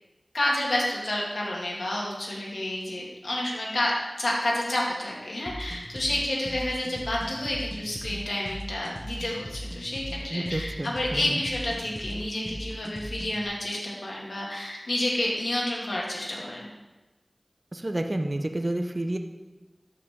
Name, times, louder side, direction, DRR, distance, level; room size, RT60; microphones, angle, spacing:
voice 1, 0.3-3.9 4.2-16.7, left 1 dB, 90° left, -4 dB, 2.0 m, -29 dB
sound 1, 5.5-13.5, equal, ahead, 1.2 m, -39 dB
voice 2, 10.3-11.4 17.7-19.2, right 1 dB, 40° right, 5 dB, 0.7 m, -30 dB
12.5 x 5.6 x 3.6 m, 1.1 s
wide cardioid pair, 55°, 0 cm